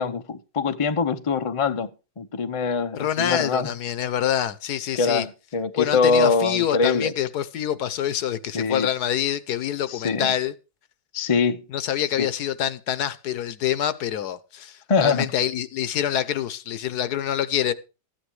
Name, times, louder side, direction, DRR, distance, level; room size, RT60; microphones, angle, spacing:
voice 1, 0.0-1.9 2.2-3.7 4.9-7.1 8.5-8.9 9.9-10.3 11.1-11.6 12.2-12.3 14.9-15.3, left 4 dB, 40° left, 0.4 m, -23 dB
voice 2, 3.0-5.3 5.8-10.5 11.7-17.7, left 10 dB, 70° left, 1.2 m, -26 dB
14.0 x 9.0 x 4.7 m
omnidirectional pair, 1.9 m